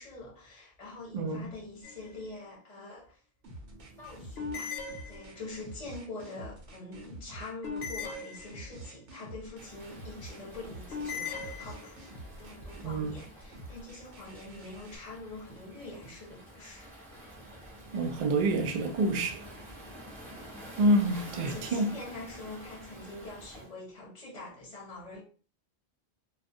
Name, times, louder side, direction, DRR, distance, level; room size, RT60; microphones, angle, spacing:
voice 1, 0.0-3.2 4.0-4.8 5.1-16.9 20.3-20.6 20.9-25.2, left 2 dB, 40° left, 0.7 m, -45 dB
voice 2, 1.1-1.5 12.8-13.1 17.9-19.5 20.8-21.9, right 1 dB, 60° right, 0.4 m, -27 dB
sound 1, 1.8-2.4 4.4-5.7 7.6-9.0 10.9-12.2, left 5 dB, 70° left, 0.8 m, -39 dB
sound 2, 3.4-15.0, right 2 dB, 80° right, 1.0 m, -47 dB
Waves surf, 9.6-23.7, equal, ahead, 0.7 m, -49 dB
2.3 x 2.3 x 2.6 m
omnidirectional pair, 1.1 m